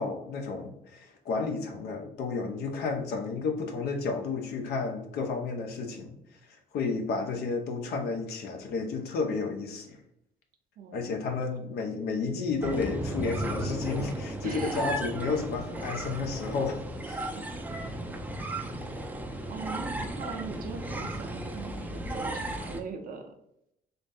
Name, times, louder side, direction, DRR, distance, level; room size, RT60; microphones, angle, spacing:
voice 1, 0.0-6.1 6.5-10.0 10.9-17.4, left 4 dB, 70° left, 4 dB, 0.9 m, -32 dB
voice 2, 10.8-11.1 14.4-14.9 17.1-17.6 19.5-23.3, right 5 dB, 55° right, 5 dB, 0.8 m, -41 dB
sound 1, 12.6-22.8, right 1 dB, 10° right, 0.5 m, -35 dB
3.9 x 2.6 x 3.4 m, 0.78 s
cardioid pair, 110°, 17 cm